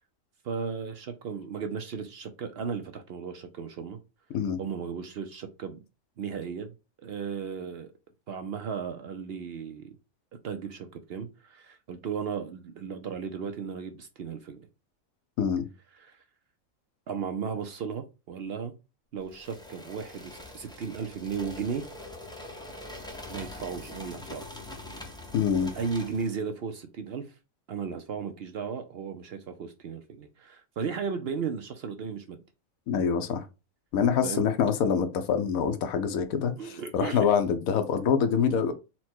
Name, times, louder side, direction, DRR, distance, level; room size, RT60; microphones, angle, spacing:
voice 1, 0.4-4.0 4.6-5.8 6.2-6.7 7.0-7.9 8.3-10.0 10.4-14.7 16.0-16.2 17.1-18.7 19.1-21.9 23.3-24.4 25.7-27.3 27.7-32.4 34.2-34.4 36.6-37.3, right 6 dB, 65° right, 0.6 m, -35 dB
sound 1, 19.3-26.4, left 1 dB, 5° left, 0.4 m, -43 dB
voice 2, 25.3-25.7 32.9-33.5 33.9-38.7, left 7 dB, 85° left, 1.1 m, -25 dB
4.3 x 2.2 x 4.3 m
omnidirectional pair, 1.5 m